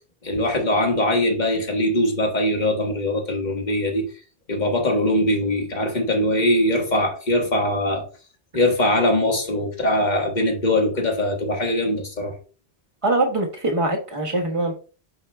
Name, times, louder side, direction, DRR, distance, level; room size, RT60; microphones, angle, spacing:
voice 1, 0.2-4.1 4.5-8.0 8.5-12.3, left 1 dB, 45° left, 1 dB, 1.6 m, -21 dB
voice 2, 13.0-14.7, right 2 dB, 30° right, 1 dB, 1.4 m, -23 dB
8.9 x 4.9 x 2.3 m, 0.37 s
omnidirectional pair, 1.1 m